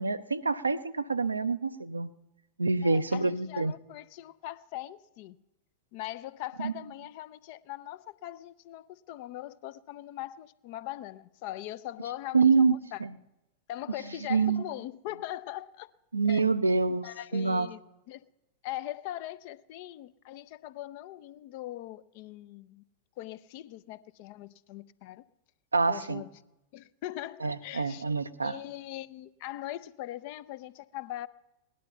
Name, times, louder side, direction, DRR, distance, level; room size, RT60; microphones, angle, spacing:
voice 1, 0.0-2.1 2.6-3.7 6.6-6.7 12.3-13.1 14.3-14.6 16.1-17.0 17.3-17.7 25.7-26.2 27.4-28.6, right 4 dB, 80° right, 0.6 m, -26 dB
voice 2, 2.8-5.4 5.9-13.0 13.7-15.9 16.3-16.5 17.0-18.3 18.6-22.8 23.2-25.2 25.9-26.3 26.7-28.0 28.4-31.3, left 14 dB, 50° left, 0.5 m, -41 dB
18.0 x 11.0 x 5.6 m
figure-of-eight pair, 90°, 0 cm